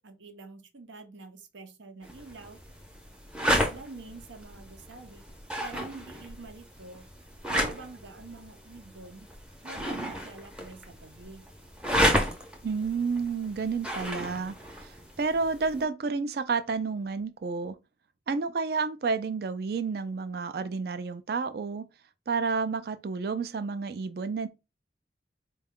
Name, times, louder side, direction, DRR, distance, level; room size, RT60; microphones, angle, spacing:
voice 1, 0.0-2.6 3.4-5.2 5.6-7.1 7.5-9.3 9.6-11.4, right 3 dB, 90° right, 0.7 m, -46 dB
sound 1, 2.0-15.8, equal, 5° right, 0.5 m, -33 dB
voice 2, 12.6-17.8 18.3-21.8 22.3-24.5, right 4 dB, 55° right, 0.4 m, -30 dB
4.3 x 2.3 x 3.5 m
head